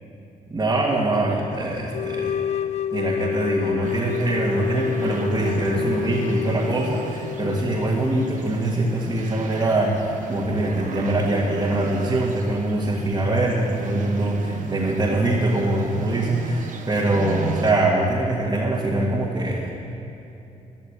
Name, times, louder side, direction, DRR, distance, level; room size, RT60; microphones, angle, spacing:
voice 1, 0.5-2.4 2.9-19.7, right 2 dB, 25° right, -5 dB, 1.9 m, -23 dB
sound 1, 1.9-8.7, left 9 dB, 50° left, 0.4 m, -29 dB
sound 2, 3.8-17.7, right 5 dB, 60° right, 1.2 m, -35 dB
12.0 x 6.7 x 9.6 m, 2.9 s
cardioid pair, 75°, 15 cm